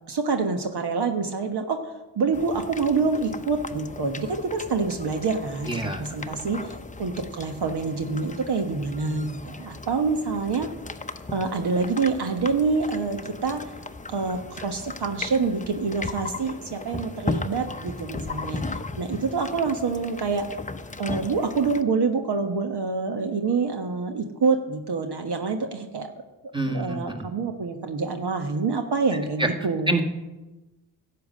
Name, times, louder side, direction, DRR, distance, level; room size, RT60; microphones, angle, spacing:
voice 1, 0.1-10.7 11.3-13.7 14.1-20.5 21.0-26.1 26.7-30.0, right 4 dB, 55° right, 6 dB, 1.3 m, -26 dB
sound 1, 2.3-21.8, left 3 dB, 15° left, 0.8 m, -37 dB
voice 2, 5.7-6.0 26.5-27.2 29.4-29.5 29.9-30.0, right 2 dB, 10° right, 4 dB, 2.0 m, -26 dB
11.5 x 8.1 x 6.5 m, 1.1 s
supercardioid pair, 45°, 47 cm